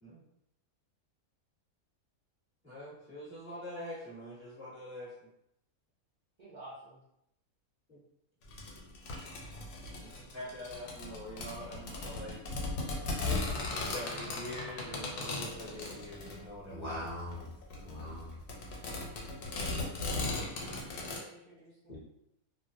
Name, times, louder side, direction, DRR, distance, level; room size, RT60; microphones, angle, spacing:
voice 1, 2.6-5.3 7.9-8.0 9.9-12.4 13.9-17.0, equal, 10° right, -10 dB, 1.0 m, -45 dB
voice 2, 6.4-7.0 20.6-22.0, right 1 dB, 55° right, -9 dB, 0.5 m, -51 dB
sound 1, 8.5-21.2, left 2 dB, 85° left, 1.2 m, -38 dB
voice 3, 16.7-17.5 17.8-18.4 19.6-19.9 21.9-22.0, left 1 dB, 55° left, -9 dB, 0.4 m, -41 dB
2.4 x 2.1 x 2.5 m, 0.79 s
omnidirectional pair, 1.6 m